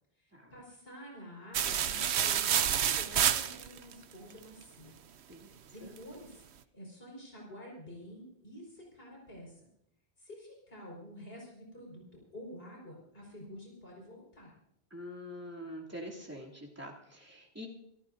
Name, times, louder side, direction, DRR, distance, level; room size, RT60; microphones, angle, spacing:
voice 1, 0.2-5.0 5.7-9.7 10.2-14.6, equal, 65° left, -1 dB, 5.1 m, -49 dB
sound 1, 1.5-3.9, right 9 dB, 85° right, 1.0 m, -28 dB
voice 2, 14.9-17.7, equal, 15° right, -4 dB, 2.8 m, -45 dB
27.5 x 13.5 x 2.7 m, 0.76 s
omnidirectional pair, 1.1 m